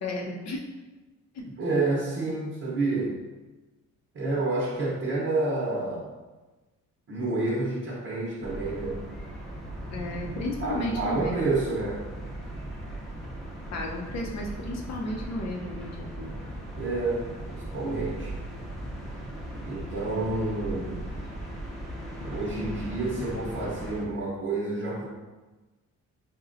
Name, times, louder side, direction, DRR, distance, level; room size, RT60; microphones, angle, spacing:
voice 1, 0.0-0.6 1.3-1.5 9.9-11.4 13.7-16.3, left 1 dB, 60° left, -1 dB, 0.7 m, -33 dB
voice 2, 1.6-3.2 4.1-6.1 7.1-9.0 10.6-12.1 16.8-18.4 19.6-21.1 22.2-25.1, right 2 dB, 45° right, -4 dB, 0.8 m, -29 dB
sound 1, 8.4-24.0, right 1 dB, ahead, 0.8 m, -38 dB
4.2 x 2.2 x 2.5 m, 1.2 s
cardioid pair, 90°, 30 cm